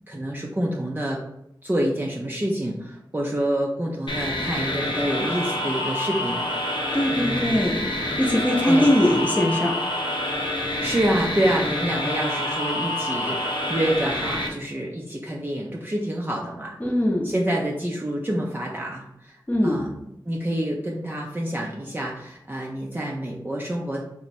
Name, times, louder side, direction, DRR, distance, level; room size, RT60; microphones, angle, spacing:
voice 1, 0.1-1.2 1.6-6.5 7.1-7.7 8.7-8.9 10.8-16.8 17.2-24.0, right 1 dB, 25° right, -2 dB, 0.5 m, -27 dB
sound 1, 4.1-14.5, left 1 dB, 75° left, 0.6 m, -27 dB
voice 2, 6.9-7.8 8.2-9.8 16.8-17.3 19.5-19.8, left 1 dB, 20° left, -1 dB, 0.7 m, -21 dB
3.0 x 2.2 x 4.2 m, 0.83 s
cardioid pair, 40°, 8 cm